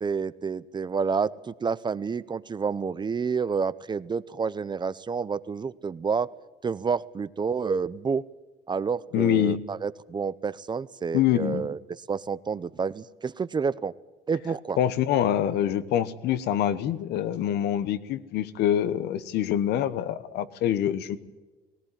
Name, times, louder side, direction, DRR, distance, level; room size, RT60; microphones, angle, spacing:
voice 1, 0.0-6.3 6.6-8.2 8.7-11.8 12.1-13.9 14.3-14.8, right 5 dB, 25° right, 17 dB, 0.6 m, -29 dB
voice 2, 9.1-9.6 11.1-11.7 14.8-21.2, left 11 dB, 80° left, 14 dB, 1.1 m, -25 dB
18.0 x 17.5 x 9.9 m, 1.2 s
cardioid pair, 110°, 17 cm